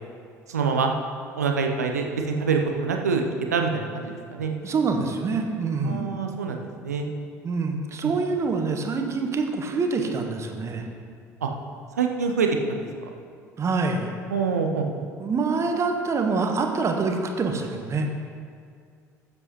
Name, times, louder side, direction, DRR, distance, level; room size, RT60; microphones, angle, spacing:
voice 1, 0.5-0.9 1.4-3.2 3.5-4.5 5.8-7.1 8.0-8.1 11.4-11.5 12.0-13.1 14.3-15.0, right 5 dB, 80° right, 3 dB, 0.8 m, -25 dB
voice 2, 4.6-6.1 7.4-10.9 13.6-14.1 15.2-18.1, right 4 dB, 35° right, 4 dB, 1.3 m, -25 dB
15.0 x 7.8 x 3.1 m, 2.2 s
figure-of-eight pair, 55°, 9 cm